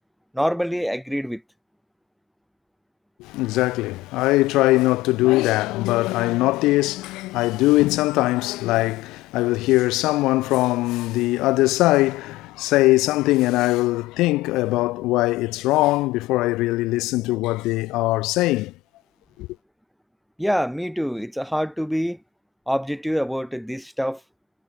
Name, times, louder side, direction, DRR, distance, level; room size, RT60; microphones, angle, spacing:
voice 1, 0.3-1.4 20.4-22.2 22.7-24.2, equal, ahead, 1.0 m, -25 dB
voice 2, 3.2-18.7 19.4-19.5, left 19 dB, 85° left, 0.5 m, -21 dB
cardioid pair, 100°, 0 cm